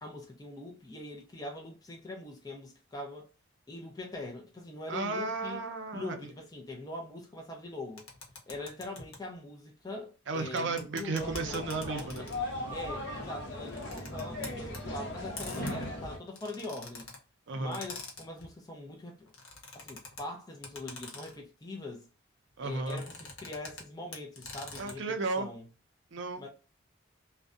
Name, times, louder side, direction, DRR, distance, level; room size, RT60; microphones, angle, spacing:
voice 1, 0.0-3.3 3.7-5.6 5.9-8.0 8.5-12.3 12.7-17.1 17.5-19.3 19.7-22.1 22.6-25.6 26.4-26.5, left 2 dB, 20° left, 0.4 m, -42 dB
voice 2, 4.9-6.3 10.3-12.3 17.5-17.8 22.6-23.0 24.8-25.5 26.1-26.5, right 3 dB, 60° right, 0.4 m, -34 dB
sound 1, 8.0-9.2 10.6-12.6 13.6-14.8 15.4-17.2 17.7-18.5 19.3-20.2 20.6-21.4 22.8-23.8 24.1-24.9, left 3 dB, 90° left, 0.8 m, -45 dB
sound 2, 11.2-16.2, left 1 dB, 55° left, 0.9 m, -38 dB
2.6 x 2.1 x 2.3 m
head